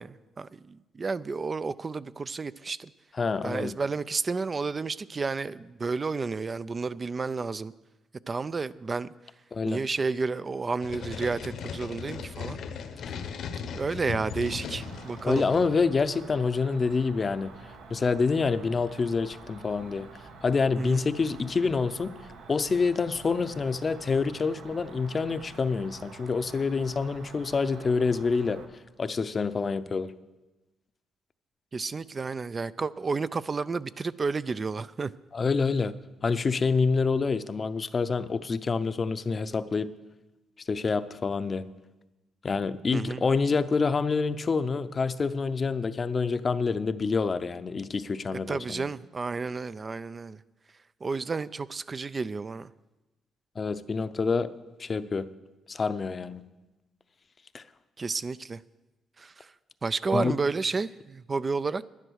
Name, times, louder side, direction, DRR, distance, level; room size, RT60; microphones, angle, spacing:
voice 1, 0.0-2.9 3.4-7.7 8.3-9.1 9.7-12.6 13.7-15.4 20.8-21.0 31.7-35.1 42.9-43.2 48.5-50.4 51.0-52.7 58.0-58.6 59.2-59.5 59.8-61.9, right 4 dB, 35° right, 16 dB, 0.3 m, -31 dB
voice 2, 3.2-3.8 9.5-9.8 15.2-17.5 17.9-20.1 20.4-22.1 22.5-28.6 29.0-30.1 35.3-35.9 36.2-39.9 40.7-41.7 42.4-48.9 53.6-54.5 54.8-55.3 55.7-56.5 57.5-57.6 60.1-60.4, left 4 dB, 35° left, 13 dB, 0.6 m, -27 dB
sound 1, 10.8-15.8, left 6 dB, 70° left, 1.0 m, -37 dB
Cricket, 14.8-28.7, right 3 dB, 85° right, 1.6 m, -48 dB
11.0 x 10.5 x 6.3 m, 1.1 s
cardioid pair, 90°, 0 cm